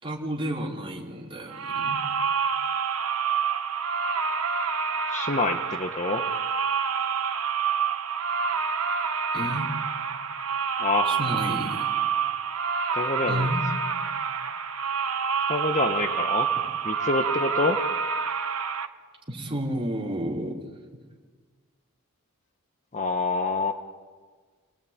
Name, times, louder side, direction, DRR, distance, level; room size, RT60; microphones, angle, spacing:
voice 1, 0.0-2.0 9.3-9.7 11.1-11.9 13.3-13.6 19.3-20.6, right 1 dB, 25° right, -2 dB, 4.6 m, -31 dB
sound 1, 1.5-18.9, right 6 dB, 80° right, 1.4 m, -27 dB
voice 2, 5.1-6.2 10.8-11.1 12.9-13.5 15.5-16.5 16.8-17.8 22.9-23.7, left 3 dB, 35° left, 6 dB, 1.2 m, -26 dB
29.5 x 18.5 x 9.2 m, 1.5 s
head